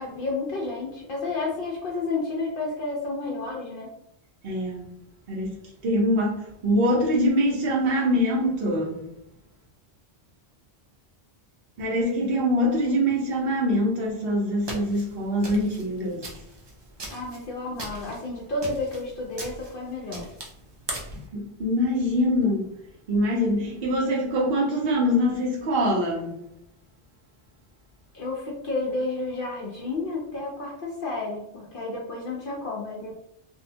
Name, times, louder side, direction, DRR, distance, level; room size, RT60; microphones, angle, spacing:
voice 1, 0.0-3.9 17.1-20.3 28.1-33.1, left 3 dB, 60° left, 0.7 m, -31 dB
voice 2, 4.4-4.9 5.3-9.0 11.8-16.3 21.1-22.7 23.1-26.4, equal, 65° right, 0.9 m, -24 dB
sound 1, 14.6-21.3, right 1 dB, 45° right, 0.3 m, -39 dB
2.6 x 2.1 x 2.6 m
omnidirectional pair, 1.1 m